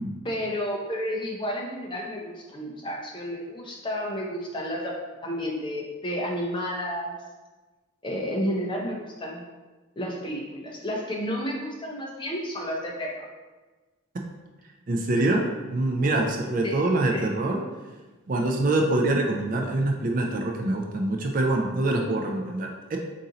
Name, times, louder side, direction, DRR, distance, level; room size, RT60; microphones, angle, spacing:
voice 1, 0.2-7.2 8.0-9.4 10.0-13.2 16.6-16.8 17.1-17.3, equal, 20° left, -1 dB, 0.6 m, -31 dB
voice 2, 14.9-15.4 15.7-17.6 18.3-23.0, right 2 dB, 40° right, 2 dB, 0.4 m, -25 dB
4.1 x 2.6 x 3.8 m, 1.2 s
head